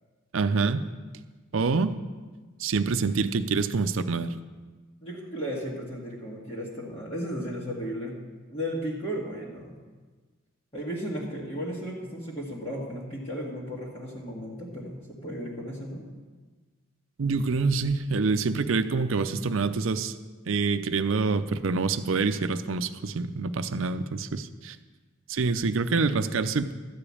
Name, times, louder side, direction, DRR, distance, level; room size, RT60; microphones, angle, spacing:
voice 1, 0.3-0.8 1.5-1.9 2.6-4.3 17.2-20.1 20.5-24.8 25.3-26.7, right 4 dB, 70° right, 10 dB, 0.5 m, -26 dB
voice 2, 5.0-8.2 8.5-9.7 10.7-16.1, equal, 30° left, -6 dB, 1.7 m, -35 dB
12.5 x 5.0 x 8.5 m, 1.3 s
head